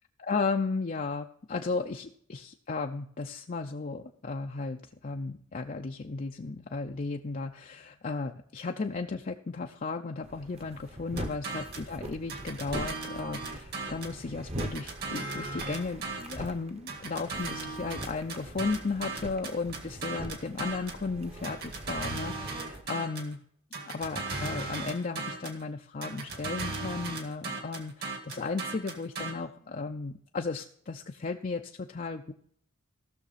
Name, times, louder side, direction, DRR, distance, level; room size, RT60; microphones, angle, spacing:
voice 1, 0.3-23.4 23.9-32.3, left 4 dB, 40° left, 3 dB, 0.5 m, -35 dB
sound 1, 10.2-22.8, right 1 dB, 30° right, 1.0 m, -43 dB
sound 2, 11.2-11.9 12.3-14.2 14.6-16.5 16.9-21.0 21.4-23.3 23.7-25.6 26.0-29.3, right 3 dB, 50° right, 1.9 m, -37 dB
17.0 x 6.5 x 4.1 m, 0.65 s
head